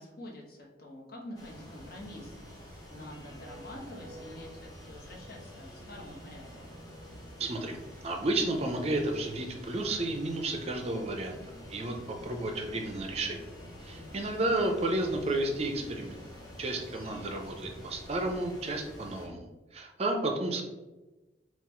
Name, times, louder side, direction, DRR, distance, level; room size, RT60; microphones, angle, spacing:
voice 1, 0.0-6.7 13.9-14.5, left 1 dB, 55° left, -2 dB, 1.0 m, -47 dB
sound 1, 1.3-19.3, equal, 20° left, 1.0 m, -47 dB
voice 2, 7.4-7.8 8.0-11.4 11.7-13.4 13.8-16.2 16.6-20.6, right 2 dB, 35° right, 4 dB, 0.5 m, -32 dB
3.9 x 2.4 x 4.2 m, 1.1 s
head